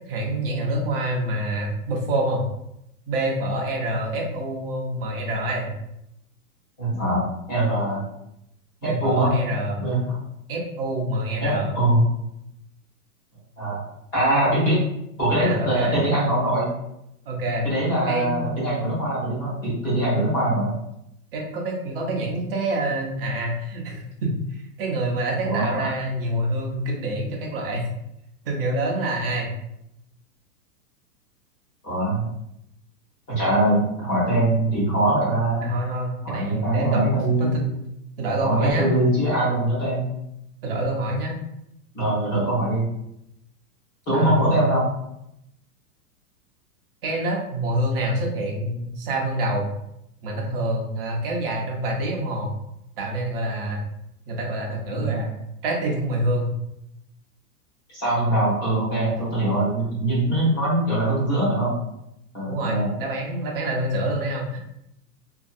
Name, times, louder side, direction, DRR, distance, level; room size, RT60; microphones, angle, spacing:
voice 1, 0.1-2.4 3.1-5.7 8.8-9.8 10.5-11.7 15.3-16.0 17.3-17.7 18.1-18.6 20.1-20.2 21.3-27.9 28.5-29.5 35.6-37.1 37.4-37.6 38.2-38.9 40.6-41.4 44.1-44.6 47.0-49.7 50.2-52.5 53.0-53.8 54.3-55.4 55.6-56.5 62.4-64.6, right 1 dB, 40° right, -1 dB, 0.6 m, -26 dB
voice 2, 6.8-8.0 8.8-9.3 9.8-10.2 11.4-12.0 13.6-13.9 14.1-14.8 15.2-16.7 17.6-20.7 25.4-25.9 31.8-32.2 33.3-35.7 36.2-37.6 38.4-40.1 40.6-40.8 41.9-42.9 44.1-44.9 54.9-55.2 57.9-61.7 62.3-62.9, right 1 dB, 20° left, -7 dB, 1.0 m, -22 dB
2.6 x 2.4 x 2.4 m, 0.81 s
hypercardioid pair, 165°, 46 cm